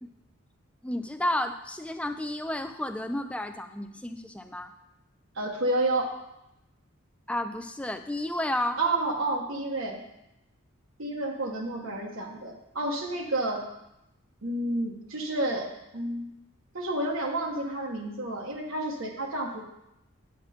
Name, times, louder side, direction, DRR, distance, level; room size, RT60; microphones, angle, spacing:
voice 1, 0.8-4.7 7.3-8.8, left 1 dB, 5° left, 8 dB, 0.4 m, -31 dB
voice 2, 5.3-6.1 8.8-10.0 11.0-13.6 14.4-16.3 16.7-19.6, right 2 dB, 75° right, 0 dB, 1.3 m, -30 dB
9.6 x 7.2 x 4.3 m, 0.87 s
head